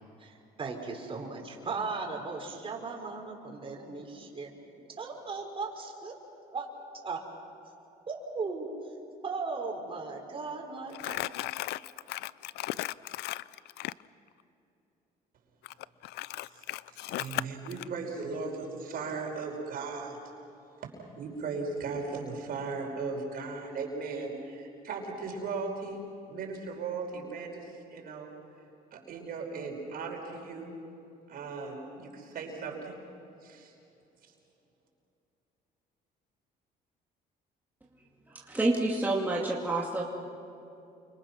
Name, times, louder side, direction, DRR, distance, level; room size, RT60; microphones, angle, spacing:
voice 1, 0.2-4.5 5.0-6.2 6.5-6.7 7.0-7.2 8.1-8.7 9.2-11.2, right 4 dB, 30° right, 1 dB, 5.1 m, -37 dB
Crumpling crinkling, 10.9-14.0 15.6-17.9, left 17 dB, 80° left, 0.5 m, -36 dB
voice 2, 17.1-20.2 20.8-20.9 21.2-28.3 28.9-30.8 31.3-33.0 33.4-33.7, right 4 dB, 60° right, 1 dB, 5.3 m, -37 dB
voice 3, 38.3-40.0, right 2 dB, 10° right, -3 dB, 2.4 m, -28 dB
29.0 x 25.5 x 6.2 m, 2.9 s
cardioid pair, 110°, 17 cm